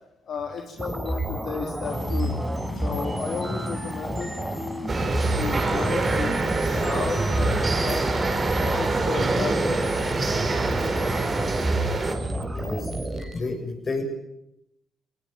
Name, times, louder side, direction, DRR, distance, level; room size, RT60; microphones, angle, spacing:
voice 1, 0.3-2.4 2.7-4.3 5.3-8.2 8.6-10.2, left 6 dB, 60° left, 2 dB, 3.0 m, -33 dB
sound 1, 0.8-13.4, right 1 dB, 15° right, 4.2 m, -30 dB
sound 2, 1.8-11.8, left 1 dB, 5° left, 4.4 m, -36 dB
sound 3, 4.9-12.2, right 3 dB, 30° right, 4.2 m, -25 dB
voice 2, 12.5-12.9 13.3-14.0, left 3 dB, 35° left, 4 dB, 7.1 m, -30 dB
20.5 x 19.5 x 8.9 m, 0.81 s
cardioid pair, 90°, 0 cm